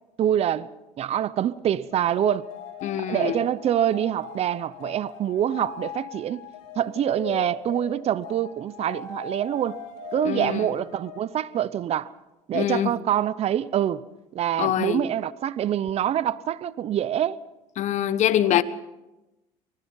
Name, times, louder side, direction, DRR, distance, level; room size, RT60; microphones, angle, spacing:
voice 1, 0.2-0.7 1.0-2.4 3.0-6.4 6.8-9.8 10.1-12.1 12.5-14.0 14.3-17.4, right 10 dB, 45° right, 0.8 m, -25 dB
sound 1, 1.9-11.7, left 7 dB, 90° left, 4.0 m, -39 dB
voice 2, 2.8-3.4 10.2-10.7 12.5-12.9 14.6-15.0 17.8-18.6, left 11 dB, 55° left, 1.2 m, -24 dB
25.5 x 19.5 x 5.6 m
supercardioid pair, 100°, 15 cm